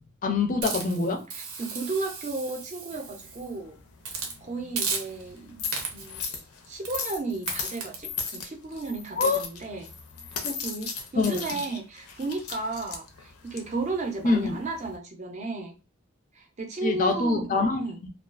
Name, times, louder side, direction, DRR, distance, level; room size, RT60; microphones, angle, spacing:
voice 1, 0.2-1.2 9.2-9.4 10.4-10.6 11.1-11.4 14.2-14.6 16.8-18.1, left 3 dB, 40° left, 0.4 m, -25 dB
Hiss, 0.6-3.5 4.0-4.4 4.8-5.4 5.7-6.2 6.8-7.1 7.5-8.0, right 5 dB, 85° right, 0.7 m, -35 dB
voice 2, 1.3-3.8 4.1-6.2 6.7-9.9 10.3-15.7 16.3-17.5 17.8-18.0, right 3 dB, 35° right, 0.5 m, -34 dB
sound 1, 2.9-15.0, left 5 dB, 90° left, 0.6 m, -38 dB
2.3 x 2.2 x 2.4 m
head